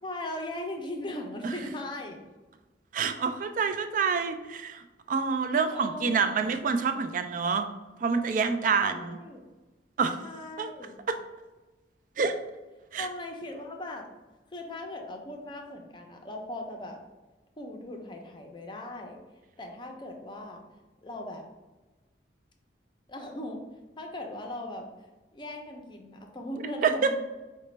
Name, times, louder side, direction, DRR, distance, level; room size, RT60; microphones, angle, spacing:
voice 1, 0.0-2.2 5.7-6.5 8.8-9.4 10.2-11.0 13.0-14.1 14.5-17.0 17.6-19.2 19.6-20.6 21.0-21.4 23.1-23.6 24.0-24.9 25.3-27.2, left 1 dB, 25° left, 3 dB, 0.5 m, -39 dB
voice 2, 2.9-7.7 8.0-9.2 10.0-10.2 10.6-10.7 11.1-11.2 12.2-12.4 12.9-13.1 26.8-27.2, right 5 dB, 45° right, 8 dB, 0.3 m, -27 dB
4.9 x 2.2 x 3.2 m, 1.2 s
head